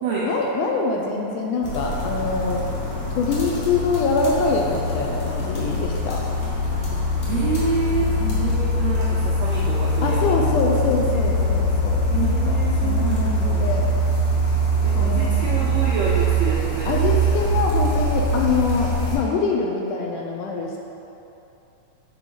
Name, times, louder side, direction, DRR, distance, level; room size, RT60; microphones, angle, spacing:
voice 1, 0.2-2.6 3.1-6.2 8.2-8.5 10.0-13.9 15.0-15.5 16.9-20.8, left 4 dB, 80° left, 0 dB, 1.9 m, -24 dB
sound 1, 1.6-19.2, right 1 dB, 55° left, 1.8 m, -22 dB
voice 2, 7.3-10.6 11.1-11.2 12.1-13.6 14.8-17.5, right 4 dB, 80° right, -6 dB, 1.5 m, -28 dB
8.0 x 3.8 x 5.0 m, 2.9 s
omnidirectional pair, 3.9 m